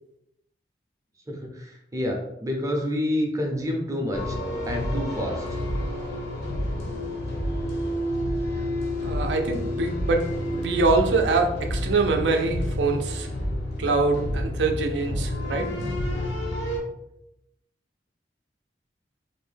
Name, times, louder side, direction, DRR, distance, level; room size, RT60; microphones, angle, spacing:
voice 1, 1.3-4.4 4.7-5.4, left 1 dB, 20° right, 1 dB, 0.5 m, -28 dB
sound 1, 4.1-16.8, left 1 dB, 65° left, 0.6 m, -29 dB
voice 2, 9.0-10.3 10.5-13.3 13.8-15.7, right 3 dB, 75° right, 4 dB, 0.4 m, -24 dB
2.6 x 2.1 x 3.3 m, 0.85 s
head